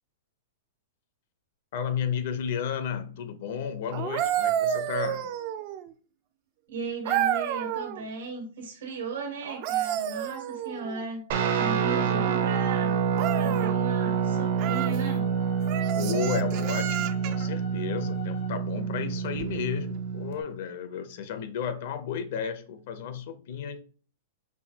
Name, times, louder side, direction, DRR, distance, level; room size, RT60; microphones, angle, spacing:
voice 1, 1.7-5.3 11.8-12.3 16.0-23.8, left 7 dB, 60° left, 0.6 m, -33 dB
sound 1, 3.9-5.9 7.1-8.0 9.4-11.0 13.1-13.7 14.6-15.0 15.7-17.5 19.3-19.5, right 11 dB, 40° right, 0.4 m, -30 dB
voice 2, 6.7-11.2 11.5-13.0 13.3-15.3, right 3 dB, 80° right, 1.4 m, -36 dB
Guitar, 11.3-20.4, right 7 dB, 65° right, 0.8 m, -27 dB
sound 2, 13.2-18.5, left 10 dB, 80° left, 1.5 m, -47 dB
5.4 x 2.3 x 2.8 m
hypercardioid pair, 145°, 0 cm